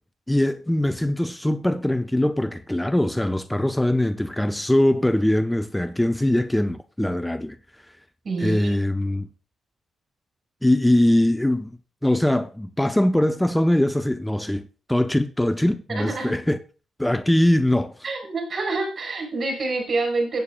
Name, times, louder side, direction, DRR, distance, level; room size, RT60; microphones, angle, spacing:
voice 1, 0.3-7.6 8.4-9.3 10.6-11.7 12.0-14.6 14.9-16.6 17.0-17.9, left 1 dB, 10° left, 0.7 m, -22 dB
voice 2, 8.2-8.7 15.9-16.3 18.0-20.4, right 3 dB, 50° right, 6.1 m, -27 dB
17.0 x 8.5 x 2.4 m
hypercardioid pair, 45°, 0 cm